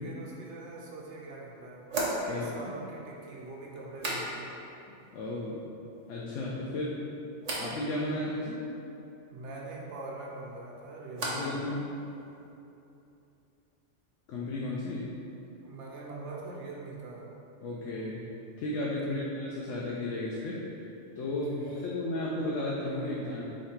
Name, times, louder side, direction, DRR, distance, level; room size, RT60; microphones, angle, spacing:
voice 1, 0.0-1.9 2.2-4.5 9.3-11.6 15.6-17.3 18.9-19.2 21.4-21.8, right 2 dB, 75° right, -3 dB, 1.0 m, -43 dB
sound 1, 1.9-4.7 5.0-5.6 5.9-6.5 7.4-7.7 10.2-11.6 11.9-12.5, right 1 dB, 40° right, 0.7 m, -38 dB
voice 2, 5.1-5.6 6.1-7.0 7.6-8.6 11.2-12.0 14.3-15.1 17.6-18.2 18.6-20.6 21.2-23.4, left 1 dB, 80° left, -4 dB, 0.9 m, -34 dB
3.8 x 3.1 x 4.3 m, 2.9 s
omnidirectional pair, 1.3 m